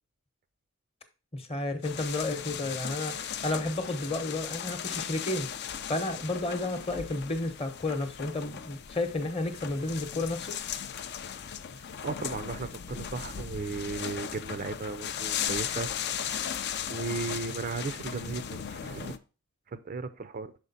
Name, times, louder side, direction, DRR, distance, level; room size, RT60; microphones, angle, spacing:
voice 1, 1.3-3.2 3.4-5.5 5.9-10.6, left 2 dB, 25° left, 7 dB, 0.9 m, -32 dB
sound 1, 1.8-19.2, left 8 dB, 45° left, 0.4 m, -37 dB
voice 2, 11.8-16.6 16.9-19.2 19.7-20.5, right 4 dB, 40° right, 11 dB, 0.4 m, -36 dB
6.3 x 5.0 x 4.0 m, 0.33 s
head